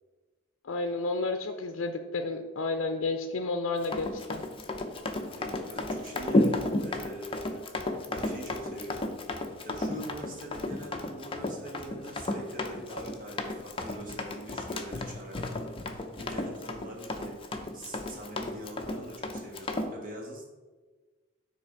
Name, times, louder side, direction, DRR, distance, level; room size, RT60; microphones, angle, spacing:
voice 1, 0.6-4.4, left 3 dB, 75° left, 5 dB, 0.5 m, -31 dB
Run, 3.8-19.9, left 2 dB, 25° left, 0.5 m, -33 dB
voice 2, 5.2-7.7 8.1-9.1 9.6-20.5, equal, 45° right, -1 dB, 1.4 m, -43 dB
9.0 x 3.3 x 4.6 m, 1.3 s
head